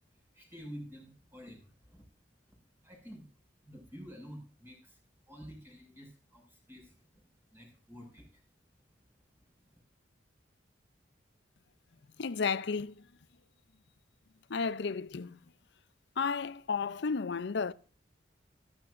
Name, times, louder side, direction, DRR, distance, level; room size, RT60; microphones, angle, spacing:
voice 1, 0.3-2.0 2.8-3.3 3.6-5.0 5.3-7.0 7.5-8.4, equal, 10° right, 5.9 m, -49 dB
voice 2, 12.2-13.1 14.5-15.4 16.2-17.7, left 5 dB, 65° left, 0.6 m, -33 dB
14.5 x 14.0 x 2.5 m
head